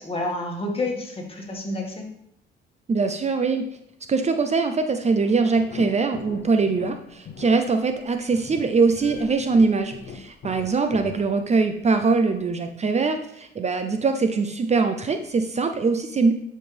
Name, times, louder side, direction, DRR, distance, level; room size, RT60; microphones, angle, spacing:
voice 1, 0.0-2.1, left 2 dB, 30° left, 0 dB, 2.0 m, -29 dB
voice 2, 2.9-3.6 4.1-16.3, right 4 dB, 35° right, 7 dB, 0.6 m, -22 dB
sound 1, 5.2-11.9 12.3-12.4, left 6 dB, 60° left, 0.8 m, -41 dB
11.0 x 5.3 x 3.4 m, 0.76 s
cardioid pair, 90°, 20 cm